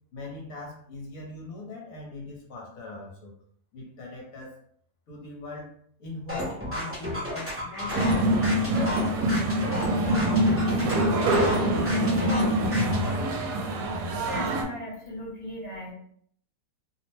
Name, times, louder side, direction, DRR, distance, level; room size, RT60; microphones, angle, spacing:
voice 1, 0.1-3.3 3.7-4.6 5.1-5.7 6.0-9.7 10.0-11.3, left 2 dB, 65° left, -2 dB, 1.1 m, -41 dB
sound 1, 6.3-13.1, equal, 15° right, 0.5 m, -32 dB
sound 2, 7.9-14.6, right 1 dB, 80° right, 1.2 m, -25 dB
voice 2, 14.2-15.9, left 1 dB, 40° left, -6 dB, 0.6 m, -37 dB
2.8 x 2.0 x 3.1 m, 0.64 s
omnidirectional pair, 1.8 m